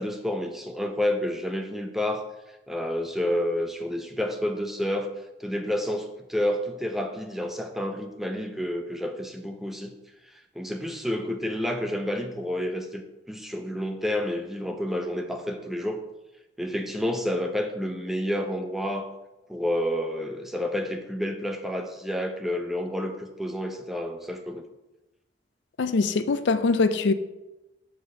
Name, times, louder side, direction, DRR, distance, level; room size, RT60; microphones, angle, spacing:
voice 1, 0.0-2.3 2.7-5.1 5.4-9.9 10.2-16.0 16.6-19.1 19.5-24.6, left 1 dB, ahead, 0.6 m, -29 dB
voice 2, 25.8-27.1, left 4 dB, 75° left, 0.4 m, -23 dB
6.2 x 5.1 x 5.6 m
head